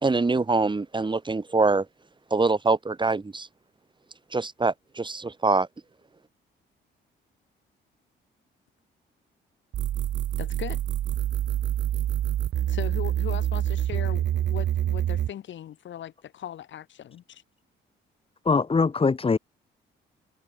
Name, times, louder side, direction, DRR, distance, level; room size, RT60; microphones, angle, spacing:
voice 1, 0.0-1.9 2.3-3.5 4.3-5.7, right 3 dB, 25° right, 4.9 m, -24 dB
sound 1, 9.7-15.3, right 11 dB, 65° right, 0.9 m, -26 dB
voice 2, 10.4-10.8 12.7-17.4, left 11 dB, 70° left, 6.2 m, -38 dB
voice 3, 18.5-19.4, left 4 dB, 30° left, 2.2 m, -22 dB
cardioid pair, 90°, 20 cm